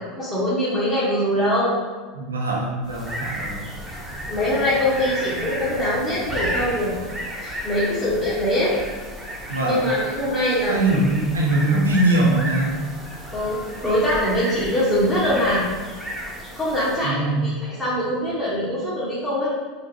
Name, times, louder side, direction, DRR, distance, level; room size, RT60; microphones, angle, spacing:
voice 1, 0.0-1.8 3.4-3.5 4.3-6.9 7.4-8.8 9.6-10.9 13.3-15.6 16.5-19.5, left 1 dB, 15° left, -11 dB, 1.1 m, -23 dB
voice 2, 2.2-3.7 9.5-9.9 10.7-12.8 17.0-17.5, right 2 dB, 90° right, -2 dB, 0.5 m, -22 dB
sound 1, 2.8-17.1, equal, 10° right, 0.8 m, -33 dB
3.8 x 2.4 x 2.8 m, 1.4 s
hypercardioid pair, 80°, 0 cm